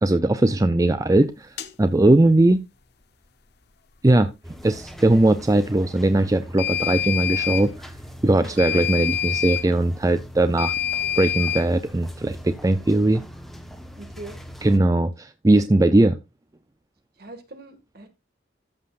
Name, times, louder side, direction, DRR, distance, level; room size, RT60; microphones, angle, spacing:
voice 1, 0.0-2.6 4.0-4.3 4.6-7.9 8.2-10.8 11.1-13.2 14.6-16.2, right 2 dB, 15° right, 0.4 m, -19 dB
sound 1, 1.6-1.7 6.6-7.7 8.6-9.7 10.6-11.7, left 10 dB, 55° left, 0.9 m, -26 dB
sound 2, 4.4-14.8, equal, ahead, 1.1 m, -41 dB
voice 2, 14.0-14.4 17.2-18.1, right 2 dB, 55° right, 2.0 m, -41 dB
13.5 x 7.6 x 2.5 m
head